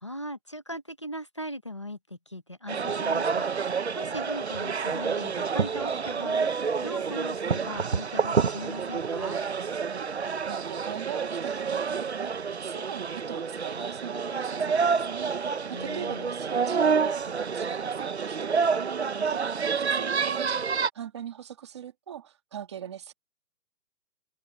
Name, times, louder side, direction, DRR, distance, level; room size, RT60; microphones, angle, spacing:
voice 1, 0.0-9.4 15.7-16.3, equal, 20° left, 0.8 m, -39 dB
sound 1, 2.7-20.9, right 5 dB, 40° right, 0.9 m, -28 dB
voice 2, 10.4-12.3 12.6-23.1, right 9 dB, 15° right, 1.6 m, -41 dB
open air
hypercardioid pair, 175°, 49 cm